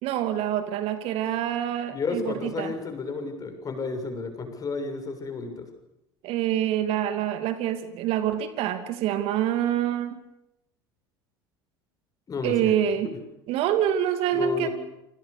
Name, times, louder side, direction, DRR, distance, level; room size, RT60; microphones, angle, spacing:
voice 1, 0.0-2.7 6.2-10.2 12.4-13.1 13.5-14.7, right 10 dB, 55° right, 9 dB, 2.6 m, -26 dB
voice 2, 1.9-5.7 12.3-12.8 13.0-13.2 14.3-14.7, left 4 dB, 30° left, 6 dB, 7.0 m, -32 dB
28.5 x 25.5 x 6.9 m, 0.87 s
figure-of-eight pair, 70°, 12 cm